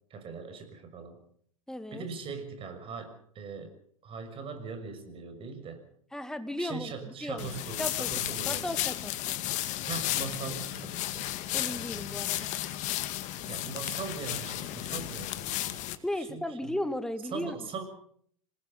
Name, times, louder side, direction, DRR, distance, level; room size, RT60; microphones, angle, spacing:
voice 1, 0.1-1.2 1.9-3.7 4.0-5.8 6.6-8.7 9.9-11.3 13.4-15.9 16.1-16.7 17.3-17.8, right 5 dB, 35° right, 8 dB, 6.4 m, -40 dB
voice 2, 1.7-2.0 6.1-7.5 7.8-9.4 11.5-12.5 13.0-13.1 16.0-17.6, left 1 dB, 5° left, 10 dB, 2.2 m, -36 dB
sound 1, 7.4-16.0, left 15 dB, 45° left, 2.0 m, -33 dB
26.5 x 20.5 x 5.6 m, 0.62 s
hypercardioid pair, 90°, 17 cm